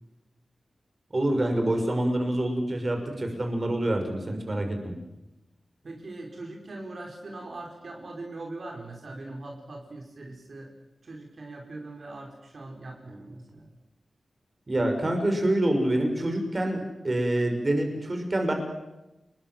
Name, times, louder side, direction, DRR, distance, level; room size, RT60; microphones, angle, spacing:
voice 1, 1.1-4.9 14.7-18.5, right 1 dB, 30° right, 4 dB, 6.2 m, -26 dB
voice 2, 5.8-10.7 11.0-13.7, right 2 dB, 55° right, 1 dB, 5.4 m, -41 dB
29.5 x 21.5 x 7.8 m, 0.97 s
wide cardioid pair, 120°, 0 cm